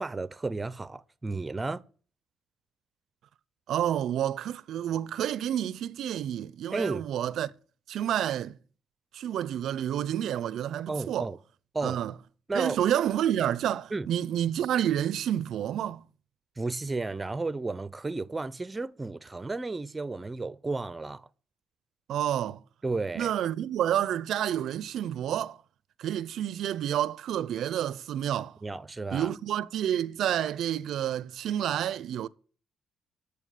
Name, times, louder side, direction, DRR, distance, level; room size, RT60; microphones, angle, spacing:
voice 1, 0.0-1.8 6.7-7.0 10.9-11.4 11.7-12.0 12.5-12.8 13.9-14.1 16.6-21.3 22.8-23.3 28.6-29.3, right 3 dB, 20° right, 0.6 m, -33 dB
voice 2, 3.7-7.5 7.9-8.5 9.1-11.3 11.8-12.1 12.5-16.1 22.1-22.6 23.1-25.6 26.0-28.6 29.1-32.3, right 10 dB, 75° right, 0.5 m, -29 dB
9.1 x 6.8 x 8.3 m
cardioid pair, 90°, 0 cm